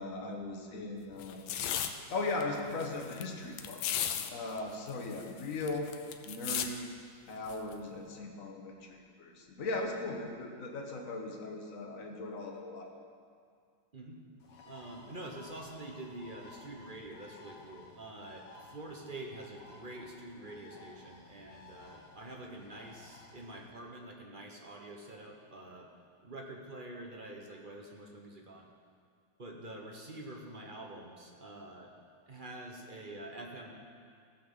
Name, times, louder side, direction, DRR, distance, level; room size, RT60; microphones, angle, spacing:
voice 1, 0.0-1.5 2.1-3.8 4.3-5.9 6.2-6.9 7.3-12.9, left 2 dB, 45° left, 1 dB, 1.6 m, -38 dB
sound 1, 1.2-1.9 2.4-2.5 2.7-3.2 3.6-4.3 4.6-4.7 4.9-6.7 7.5-7.7, left 9 dB, 85° left, 1.5 m, -35 dB
Bird, 14.4-23.7, left 3 dB, 65° left, 2.1 m, -55 dB
voice 2, 14.6-25.9 26.2-28.7 29.4-31.9 32.3-33.7, right 1 dB, 30° right, 1 dB, 1.1 m, -46 dB
16.0 x 5.9 x 7.2 m, 2.2 s
omnidirectional pair, 2.1 m